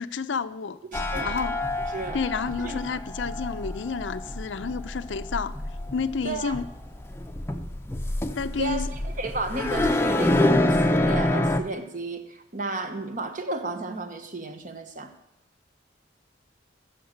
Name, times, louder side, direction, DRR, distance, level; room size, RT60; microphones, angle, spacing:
voice 1, 0.0-0.8 1.2-1.6 2.1-5.5 5.9-6.7 8.4-8.9, left 5 dB, 80° left, 13 dB, 0.6 m, -30 dB
sound 1, 0.9-11.6, left 1 dB, 15° left, 0.6 m, -27 dB
voice 2, 0.9-1.4 1.9-2.2 2.6-2.8 6.2-6.6 8.6-15.1, right 2 dB, 45° right, 8 dB, 1.1 m, -33 dB
13.5 x 7.5 x 6.6 m, 0.94 s
head